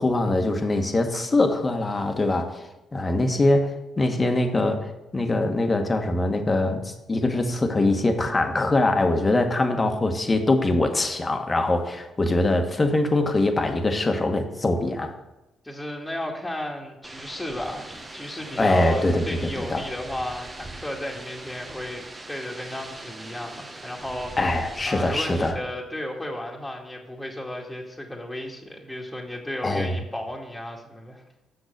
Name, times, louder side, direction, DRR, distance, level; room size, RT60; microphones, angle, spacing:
voice 1, 0.0-2.6 2.9-15.1 18.6-19.8 24.4-25.6 29.6-29.9, left 2 dB, 30° left, 5 dB, 1.4 m, -23 dB
voice 2, 15.6-24.4 24.9-31.2, left 1 dB, 10° left, -1 dB, 2.0 m, -34 dB
sound 1, 17.0-25.5, right 2 dB, 30° right, 1.4 m, -41 dB
7.0 x 6.4 x 6.8 m, 0.96 s
hypercardioid pair, 45°, 0 cm